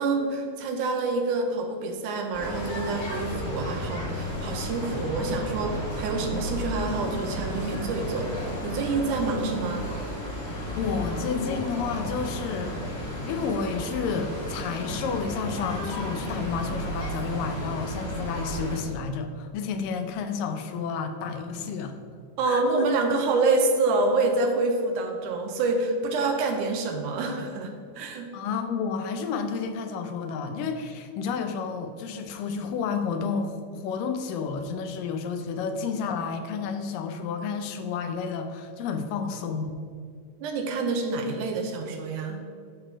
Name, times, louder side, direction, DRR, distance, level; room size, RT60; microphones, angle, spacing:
voice 1, 0.0-9.9 22.4-28.3 40.4-42.4, right 3 dB, 75° right, 4 dB, 2.1 m, -27 dB
sound 1, 2.3-18.8, equal, 35° left, 1.0 m, -33 dB
voice 2, 10.8-12.8 13.3-22.0 22.4-22.9 28.3-39.8, left 5 dB, 90° left, 6 dB, 2.4 m, -31 dB
11.0 x 4.1 x 4.5 m, 2.2 s
omnidirectional pair, 3.8 m